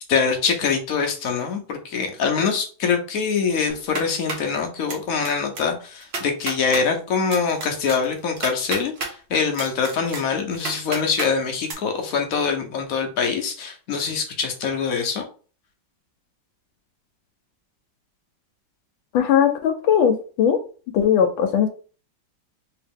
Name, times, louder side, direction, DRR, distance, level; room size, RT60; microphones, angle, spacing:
voice 1, 0.1-15.3, left 5 dB, 65° left, 3 dB, 0.9 m, -24 dB
sound 1, 3.7-4.5 4.9-5.3 5.6-5.7 6.0-6.8 7.3-9.1 9.5-11.3 11.7-11.8, right 3 dB, 50° right, 0.8 m, -31 dB
voice 2, 19.1-20.6 20.9-21.7, left 8 dB, 80° left, 6 dB, 1.4 m, -19 dB
3.3 x 2.9 x 3.5 m, 0.38 s
omnidirectional pair, 2.1 m